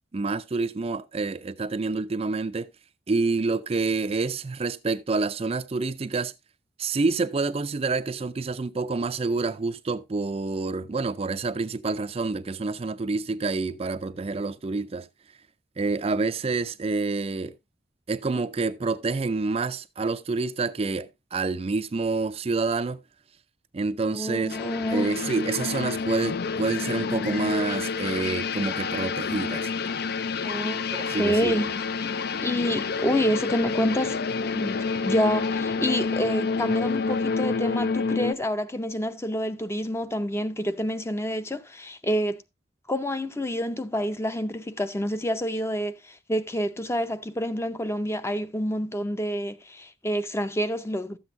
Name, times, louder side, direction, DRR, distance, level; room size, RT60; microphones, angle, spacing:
voice 1, 0.1-2.7 3.1-6.3 6.8-15.1 15.8-17.5 18.1-23.0 23.7-24.6 24.9-29.7 30.9-31.6, right 3 dB, 30° right, 0.4 m, -28 dB
voice 2, 24.1-25.1 30.4-30.8 31.1-31.7 32.4-34.2 34.5-42.4 42.9-51.2, equal, 15° left, 0.6 m, -28 dB
sound 1, 24.5-38.3, left 4 dB, 55° left, 0.5 m, -28 dB
13.0 x 7.9 x 2.6 m
head